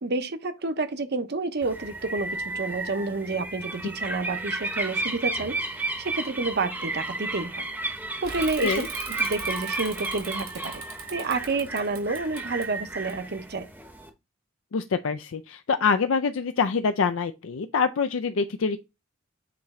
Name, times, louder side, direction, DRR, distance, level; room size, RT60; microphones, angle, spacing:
voice 1, 0.0-7.7 8.2-8.9 9.2-13.7, right 3 dB, 55° right, 0.8 m, -29 dB
sound 1, 1.6-14.1, right 2 dB, 10° right, 0.8 m, -33 dB
Bicycle / Mechanisms, 8.2-13.7, right 6 dB, 85° right, 2.4 m, -42 dB
voice 2, 14.7-18.8, left 5 dB, 70° left, 0.4 m, -25 dB
8.3 x 3.2 x 3.6 m
head